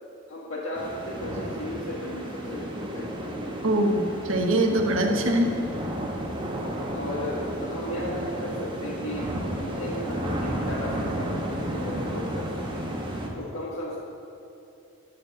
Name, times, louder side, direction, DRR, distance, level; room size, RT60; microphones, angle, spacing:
voice 1, 0.3-3.1 4.9-5.2 6.6-7.3 7.6-12.4 12.7-12.9 13.3-14.0, left 1 dB, 90° left, -6 dB, 1.8 m, -35 dB
sound 1, 0.8-13.3, right 1 dB, 25° right, 1.2 m, -32 dB
voice 2, 3.6-4.0 4.3-5.5, right 1 dB, 80° right, 3 dB, 1.2 m, -22 dB
9.5 x 7.5 x 7.9 m, 2.7 s
head